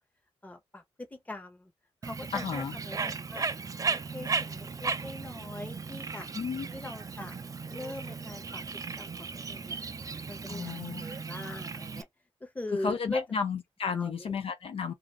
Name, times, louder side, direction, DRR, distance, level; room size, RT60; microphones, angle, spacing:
voice 1, 0.4-1.7 2.0-3.4 3.9-6.3 6.7-7.3 7.7-8.6 9.0-9.8 10.3-12.1 12.4-13.3 13.8-14.3, left 2 dB, 15° left, 0.9 m, -41 dB
Bird, 2.0-12.0, right 4 dB, 30° right, 0.4 m, -36 dB
voice 2, 2.3-2.8 6.3-6.7 10.5-11.0 12.8-14.9, left 6 dB, 60° left, 0.4 m, -33 dB
2.5 x 2.4 x 3.3 m
cardioid pair, 95°, 11 cm